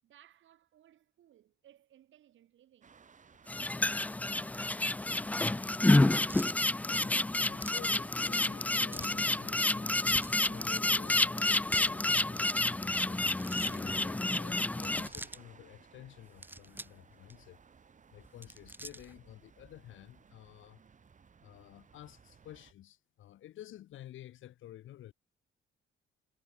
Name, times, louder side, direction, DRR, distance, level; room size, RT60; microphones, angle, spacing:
voice 1, 0.0-3.0, right 12 dB, 75° right, 7.8 m, -62 dB
sound 1, 2.8-22.7, right 6 dB, 40° right, 2.8 m, -60 dB
sound 2, 3.5-15.1, left 2 dB, 5° left, 0.4 m, -29 dB
sound 3, 6.3-6.6 7.6-7.8 8.9-9.2 10.0-10.4 11.5-11.9 13.1-13.8 14.7-15.4 16.2-17.0 17.3-17.4 18.2-19.2, right 1 dB, 10° right, 3.7 m, -46 dB
voice 2, 6.8-10.1 10.5-17.6 18.1-20.8 21.4-25.1, left 13 dB, 80° left, 6.3 m, -52 dB
cardioid pair, 90°, 20 cm